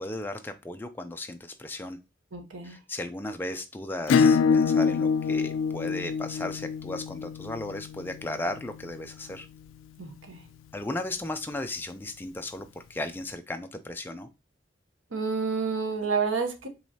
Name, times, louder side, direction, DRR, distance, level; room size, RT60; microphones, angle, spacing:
voice 1, 0.0-2.0 2.6-9.5 10.7-14.3, left 1 dB, 10° left, 0.4 m, -35 dB
voice 2, 2.3-2.8 10.0-10.4 15.1-16.7, right 5 dB, 85° right, 0.9 m, -29 dB
Acoustic guitar / Strum, 4.1-9.3, left 5 dB, 85° left, 0.3 m, -26 dB
4.7 x 3.1 x 2.8 m
head